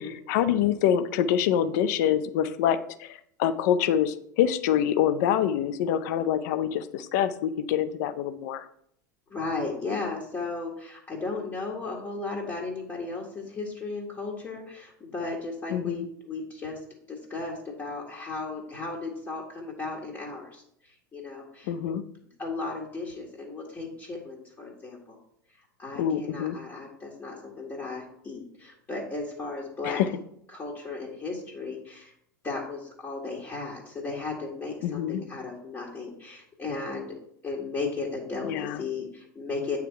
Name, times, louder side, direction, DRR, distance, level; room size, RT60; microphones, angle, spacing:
voice 1, 0.3-8.7 15.7-16.0 21.7-22.0 26.0-26.6 29.8-30.1 34.8-35.2 38.4-38.8, left 9 dB, 55° left, 13 dB, 0.5 m, -25 dB
voice 2, 9.3-16.8 17.1-21.7 22.4-25.2 25.8-30.0 30.5-32.1 32.4-37.1 37.4-39.8, left 3 dB, 25° left, -3 dB, 1.7 m, -35 dB
8.4 x 3.4 x 4.6 m, 0.69 s
figure-of-eight pair, 80°, 10 cm